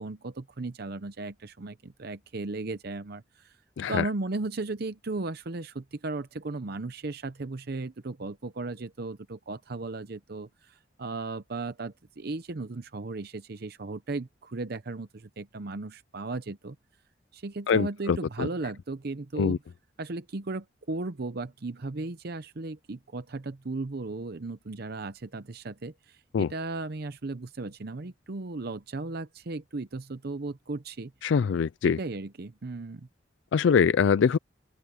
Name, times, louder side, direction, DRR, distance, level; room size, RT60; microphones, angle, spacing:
voice 1, 0.0-3.6 3.9-16.8 17.3-19.6 20.0-31.1 31.8-33.1, right 3 dB, 55° right, 0.7 m, -36 dB
voice 2, 3.8-4.1 17.7-18.5 19.4-19.6 26.3-26.5 31.2-32.0 33.5-34.4, left 6 dB, 80° left, 0.4 m, -23 dB
open air
head